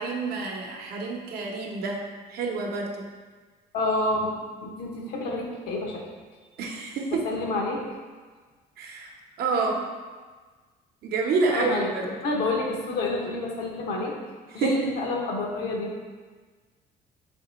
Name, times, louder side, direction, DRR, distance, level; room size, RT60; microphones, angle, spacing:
voice 1, 0.0-2.0 2.3-3.1 6.6-7.3 8.8-9.1 9.4-9.8 11.0-12.1 14.5-14.8, right 3 dB, 70° right, 0 dB, 0.7 m, -28 dB
voice 2, 3.7-4.3 4.6-6.0 7.2-7.8 11.5-11.9 12.2-14.2 14.5-15.9, left 2 dB, 80° left, 0 dB, 0.8 m, -28 dB
3.6 x 3.0 x 4.0 m, 1.4 s
cardioid pair, 110°, 17 cm